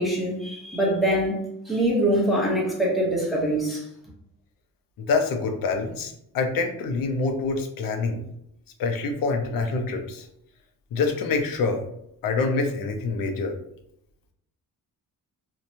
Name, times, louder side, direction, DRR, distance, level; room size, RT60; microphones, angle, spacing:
voice 1, 0.0-1.4 1.7-3.8, right 1 dB, ahead, -5 dB, 0.7 m, -23 dB
voice 2, 5.1-8.2 8.8-10.3 10.9-11.8 12.2-13.5, left 4 dB, 70° left, 4 dB, 0.5 m, -26 dB
2.9 x 2.2 x 2.6 m, 0.77 s
wide cardioid pair, 170°, 35 cm